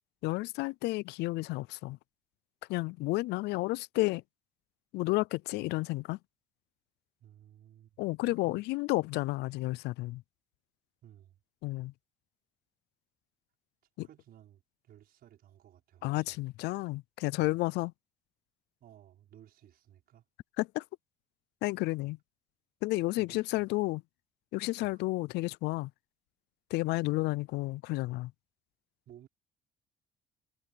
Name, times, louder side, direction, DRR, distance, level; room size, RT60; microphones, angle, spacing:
voice 1, 0.2-2.0 2.7-4.2 4.9-6.2 8.0-10.2 11.6-11.9 14.0-14.1 16.0-17.9 20.6-20.8 21.6-22.2 22.8-24.0 24.5-25.9 26.7-28.3, left 21 dB, 85° left, 0.4 m, -31 dB
voice 2, 7.2-8.6 11.0-11.4 14.0-16.4 17.4-17.5 18.8-20.2 23.2-23.9 24.8-25.0 29.1-29.3, right 11 dB, 65° right, 5.8 m, -57 dB
cardioid pair, 110°, 17 cm